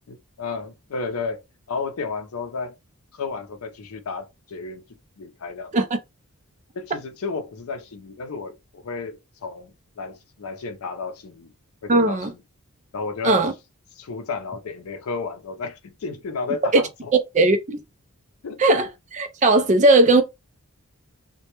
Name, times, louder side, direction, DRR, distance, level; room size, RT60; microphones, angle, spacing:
voice 1, 0.1-2.8 3.1-4.8 5.2-5.7 6.7-11.5 11.8-12.4 12.9-13.5 14.0-17.1 18.4-18.8, left 4 dB, 70° left, 0.5 m, -32 dB
voice 2, 11.9-12.3 13.2-13.5 16.7-16.8 17.3-17.8 18.6-20.2, right 2 dB, 35° right, 0.4 m, -17 dB
2.1 x 2.1 x 2.9 m
head